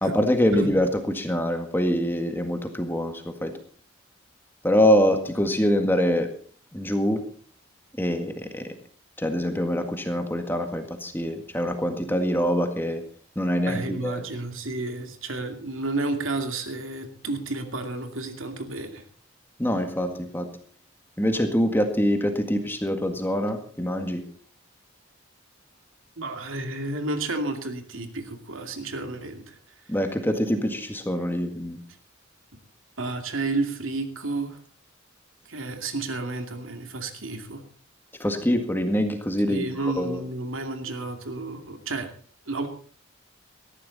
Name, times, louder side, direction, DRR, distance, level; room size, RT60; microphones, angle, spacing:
voice 1, 0.0-3.5 4.6-6.3 6.7-7.2 8.0-8.7 9.2-13.0 13.3-14.2 19.6-20.5 21.2-24.2 29.9-31.8 38.2-39.6 40.0-40.2, equal, 10° left, 6 dB, 1.7 m, -24 dB
voice 2, 13.7-19.0 26.2-29.6 33.0-34.6 35.5-37.6 39.5-42.1 42.5-42.7, right 2 dB, 75° right, 6 dB, 2.5 m, -31 dB
19.0 x 14.0 x 4.1 m, 0.44 s
head